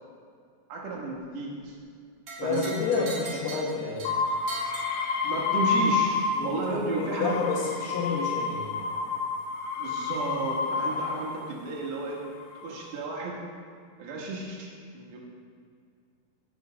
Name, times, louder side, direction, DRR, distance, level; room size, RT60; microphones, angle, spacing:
voice 1, 0.7-1.8 2.4-3.0 5.2-7.4 9.8-12.2 12.6-13.4 14.0-15.2, right 3 dB, 75° right, -2 dB, 3.4 m, -33 dB
sound 1, 2.3-5.6, right 4 dB, 50° right, 2.6 m, -40 dB
voice 2, 2.4-4.0 6.4-8.7, left 4 dB, 70° left, -3 dB, 3.0 m, -29 dB
sound 2, 4.1-6.6 6.9-11.5 12.3-12.8, left 4 dB, 85° left, 2.0 m, -29 dB
7.0 x 6.3 x 7.2 m, 2.2 s
omnidirectional pair, 5.0 m